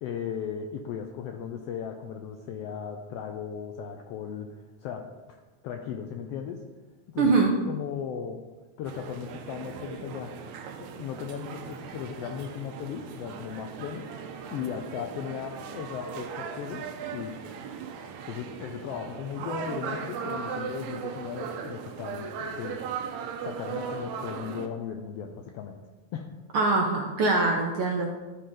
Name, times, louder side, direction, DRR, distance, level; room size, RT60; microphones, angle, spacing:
voice 1, 0.0-6.6 7.1-7.4 7.7-8.4 8.8-10.4 10.8-14.1 14.5-17.6 18.2-22.8 23.4-25.8 26.1-26.3, left 8 dB, 90° left, 4 dB, 1.4 m, -37 dB
voice 2, 7.2-7.5 26.5-28.1, right 3 dB, 70° right, 0 dB, 1.3 m, -23 dB
sound 1, 8.9-24.7, right 6 dB, 85° right, 2.0 m, -38 dB
12.5 x 5.4 x 3.8 m, 1.3 s
omnidirectional pair, 3.3 m